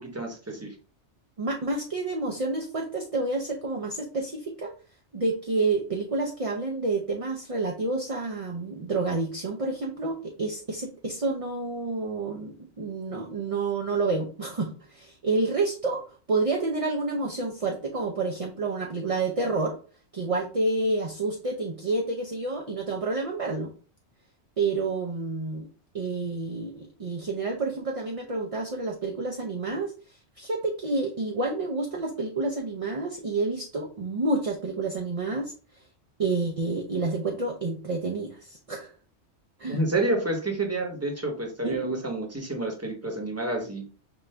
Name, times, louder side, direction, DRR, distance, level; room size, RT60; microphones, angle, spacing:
voice 1, 0.1-0.7 39.7-43.8, right 2 dB, 15° right, 2 dB, 0.9 m, -29 dB
voice 2, 1.4-4.7 5.1-19.8 20.1-23.7 24.6-25.7 25.9-29.9 30.4-35.5 36.2-38.9 39.6-39.8 41.6-41.8, right 3 dB, 40° right, 1 dB, 0.5 m, -29 dB
5.2 x 2.6 x 3.3 m, 0.38 s
omnidirectional pair, 1.2 m